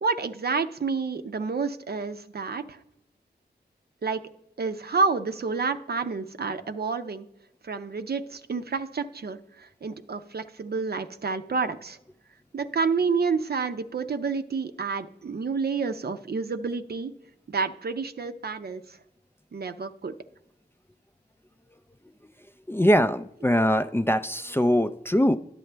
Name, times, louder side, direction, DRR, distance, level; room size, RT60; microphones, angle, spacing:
voice 1, 0.0-2.8 4.0-4.2 4.6-7.3 7.6-12.0 12.5-17.1 17.5-19.0 19.5-20.1, right 4 dB, 60° right, 8 dB, 0.6 m, -29 dB
voice 2, 22.7-25.4, equal, 15° left, 11 dB, 0.4 m, -22 dB
10.5 x 7.6 x 3.3 m, 0.85 s
cardioid pair, 45°, 18 cm